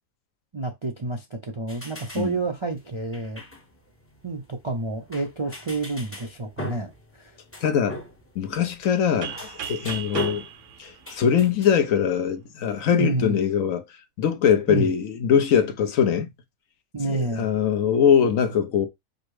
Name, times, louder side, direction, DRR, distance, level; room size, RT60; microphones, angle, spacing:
voice 1, 0.5-3.4 4.2-7.4 12.9-13.4 14.7-14.9 16.9-17.5, right 3 dB, 40° right, 0.4 m, -29 dB
sound 1, 1.7-11.8, left 1 dB, 15° left, 0.5 m, -39 dB
voice 2, 7.6-8.0 8.4-10.4 10.8-13.8 14.2-16.3 17.4-18.9, left 8 dB, 75° left, 1.1 m, -22 dB
sound 2, 9.2-12.0, right 9 dB, 65° right, 1.0 m, -37 dB
5.1 x 2.0 x 4.7 m
omnidirectional pair, 1.5 m